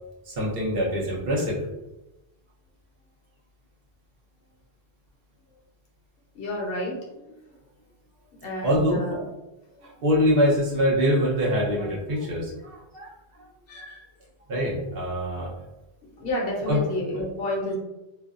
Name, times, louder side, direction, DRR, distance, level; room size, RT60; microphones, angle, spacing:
voice 1, 0.3-1.6 8.6-9.0 9.8-13.1 13.4-13.5 14.5-15.5 16.7-16.8, equal, 65° right, -4 dB, 0.9 m, -24 dB
voice 2, 6.4-7.0 8.4-9.2 13.7-14.0 16.2-17.8, left 1 dB, 65° left, -2 dB, 0.8 m, -30 dB
2.6 x 2.0 x 2.3 m, 0.98 s
omnidirectional pair, 1.1 m